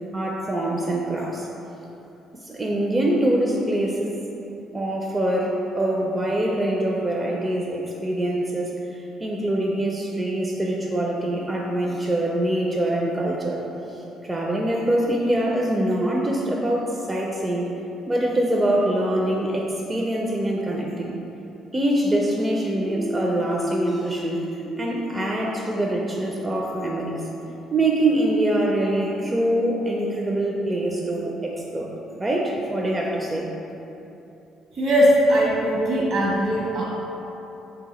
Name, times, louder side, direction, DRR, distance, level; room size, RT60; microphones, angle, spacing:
voice 1, 0.1-1.5 2.3-4.2 4.7-13.6 13.9-17.7 18.1-21.2 21.7-27.3 27.7-31.9 32.2-33.5, right 1 dB, 20° right, -2 dB, 0.4 m, -24 dB
sound 1, 22.7-26.4, left 1 dB, 60° left, 0.6 m, -32 dB
voice 2, 34.8-36.8, equal, 65° right, -5 dB, 1.2 m, -20 dB
3.6 x 2.8 x 4.1 m, 3.0 s
supercardioid pair, 70°, 0 cm